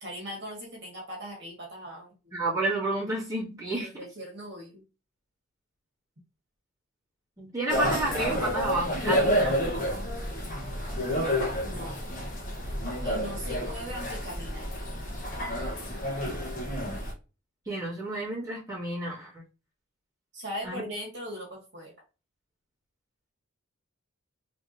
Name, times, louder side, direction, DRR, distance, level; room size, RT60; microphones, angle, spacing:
voice 1, 0.0-2.1 3.8-4.8 11.6-12.0 13.0-14.7 20.3-21.9, equal, 55° right, -2 dB, 1.6 m, -39 dB
voice 2, 2.3-3.9 7.4-9.6 17.7-19.4 20.6-20.8, right 2 dB, 15° right, -8 dB, 1.8 m, -30 dB
sound 1, 7.7-17.1, equal, 40° left, 0.9 m, -29 dB
3.6 x 3.4 x 2.6 m, 0.31 s
head